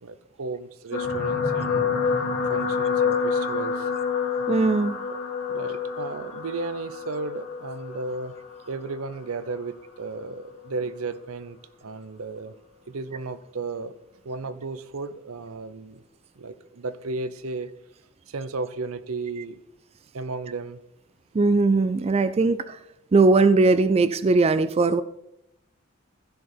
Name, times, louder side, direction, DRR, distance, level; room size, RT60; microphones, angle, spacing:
voice 1, 0.0-1.9 2.4-3.9 5.1-5.2 5.5-8.3 8.7-12.5 12.9-13.9 14.2-16.0 16.4-17.7 18.3-19.6 20.1-20.8, right 3 dB, 80° right, 14 dB, 0.7 m, -34 dB
sound 1, 0.9-9.4 10.1-10.4 10.6-10.7, left 5 dB, 60° left, 2.8 m, -27 dB
voice 2, 4.5-5.0 21.3-22.8 23.1-25.0, right 3 dB, 30° right, 13 dB, 0.3 m, -19 dB
15.0 x 5.2 x 4.4 m, 0.81 s
head